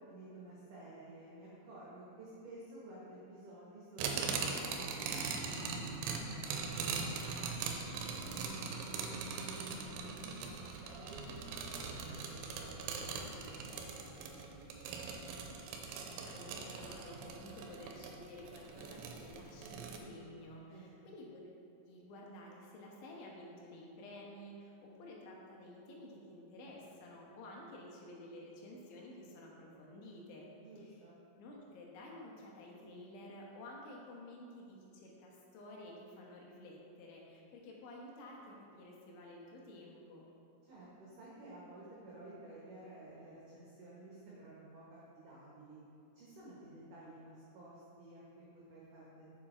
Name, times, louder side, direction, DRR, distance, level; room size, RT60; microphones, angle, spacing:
voice 1, 0.1-5.6 5.9-6.7 7.0-7.5 8.1-14.8 20.7-21.1 30.6-31.2 40.6-45.8 46.1-49.4, right 1 dB, 65° right, -7 dB, 2.3 m, -53 dB
sound 1, 4.0-20.0, right 5 dB, 85° right, 3.0 m, -41 dB
voice 2, 16.0-21.5 21.8-30.5 30.8-31.0 31.4-40.3, left 1 dB, 90° left, -2 dB, 3.7 m, -52 dB
7.2 x 7.1 x 4.4 m, 2.7 s
omnidirectional pair, 5.3 m